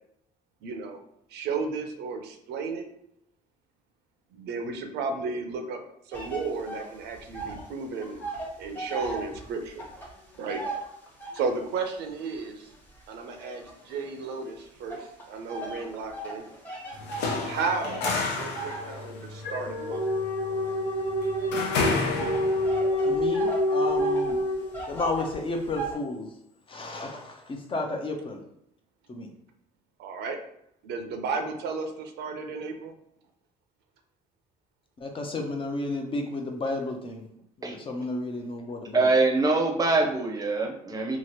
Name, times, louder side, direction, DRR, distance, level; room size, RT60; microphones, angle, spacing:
voice 1, 0.6-1.0 1.3-2.9 4.3-8.2 8.6-9.9 10.4-10.6 11.3-12.7 13.1-16.4 17.5-18.1 18.3-20.0 30.0-30.4 30.8-32.9, right 4 dB, 80° right, 5 dB, 0.5 m, -33 dB
sound 1, 6.1-7.7 7.9-11.6 12.2-14.3 14.9-25.9, right 3 dB, 10° left, 0.9 m, -38 dB
sound 2, 16.9-22.9, left 3 dB, 80° left, 0.5 m, -31 dB
sound 3, 18.8-25.1, left 1 dB, 45° left, 1.3 m, -27 dB
voice 2, 23.0-24.4 24.9-26.3 26.7-28.4 29.1-29.3 35.0-37.2 37.6-39.1, left 2 dB, 30° left, 3 dB, 0.5 m, -32 dB
voice 3, 38.9-41.2, right 3 dB, 20° right, 1 dB, 0.6 m, -24 dB
2.9 x 2.4 x 2.9 m, 0.75 s
cardioid pair, 110°, 17 cm